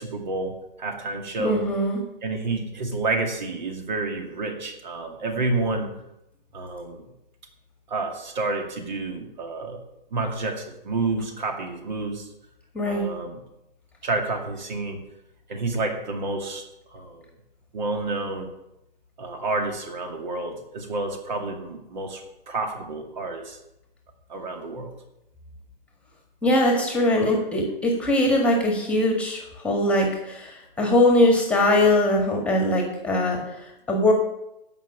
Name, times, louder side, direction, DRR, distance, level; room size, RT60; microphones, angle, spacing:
voice 1, 0.0-1.6 2.2-5.9 6.5-7.1 7.9-9.8 10.1-12.3 12.8-13.4 14.0-15.0 15.5-16.6 16.9-17.2 17.7-18.5 19.2-23.6 24.3-24.9, right 3 dB, 50° right, 4 dB, 2.3 m, -29 dB
voice 2, 1.4-2.0 12.7-13.0 26.4-34.1, left 1 dB, 5° left, 1 dB, 1.7 m, -21 dB
15.5 x 5.8 x 6.3 m, 0.87 s
figure-of-eight pair, 135°, 29 cm